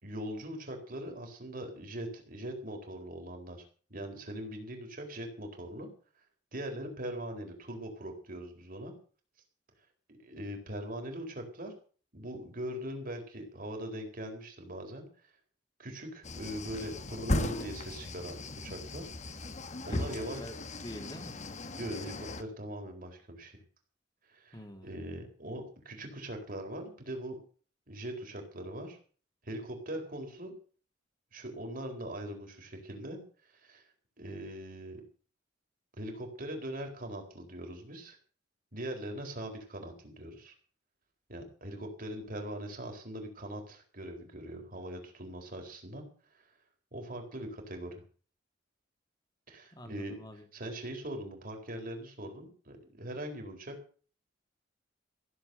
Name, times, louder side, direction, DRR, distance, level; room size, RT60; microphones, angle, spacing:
voice 1, 0.0-3.6 3.9-5.9 6.5-8.9 10.1-11.7 12.1-15.1 15.8-18.4 18.6-19.1 19.9-20.4 21.8-23.6 24.3-27.4 27.9-29.0 29.4-30.5 31.3-33.8 34.2-35.0 36.0-38.2 38.7-40.5 41.3-46.0 46.9-47.9 49.5-50.2 50.5-53.8, right 1 dB, 50° right, 4.1 m, -41 dB
sound 1, 16.2-22.4, left 2 dB, 40° left, 1.2 m, -37 dB
voice 2, 19.9-21.4 24.5-24.9 49.7-50.4, equal, 20° left, 2.4 m, -46 dB
15.5 x 7.7 x 7.9 m
head